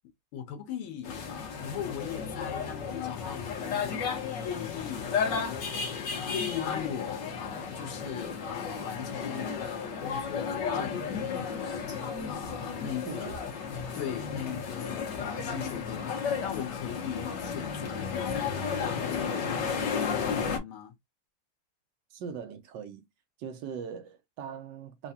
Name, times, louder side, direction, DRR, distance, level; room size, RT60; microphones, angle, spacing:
voice 1, 0.3-4.2 4.4-5.4 6.2-12.0 12.3-13.4 13.9-19.8 20.2-20.9, left 8 dB, 80° left, 1.8 m, -39 dB
sound 1, 1.0-20.6, left 6 dB, 60° left, 1.7 m, -33 dB
sound 2, 11.6-16.9, left 4 dB, 45° left, 1.1 m, -51 dB
voice 2, 13.1-13.4 22.1-23.1 23.4-25.1, right 7 dB, 75° right, 1.1 m, -40 dB
4.6 x 2.4 x 2.7 m
omnidirectional pair, 2.3 m